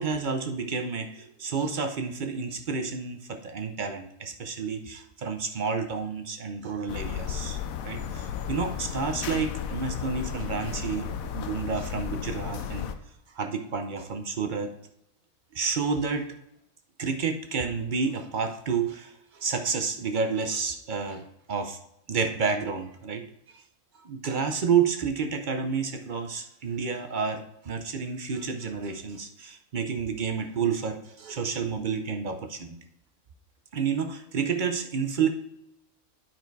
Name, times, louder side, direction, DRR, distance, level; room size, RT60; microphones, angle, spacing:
voice 1, 0.0-7.6 7.8-12.9 13.3-14.7 15.5-16.3 17.0-21.8 22.1-23.6 24.0-32.8 33.7-35.3, right 5 dB, 50° right, 6 dB, 0.6 m, -30 dB
sound 1, 6.9-12.9, left 8 dB, 75° left, 1.0 m, -34 dB
9.3 x 4.5 x 4.6 m, 0.80 s
omnidirectional pair, 1.5 m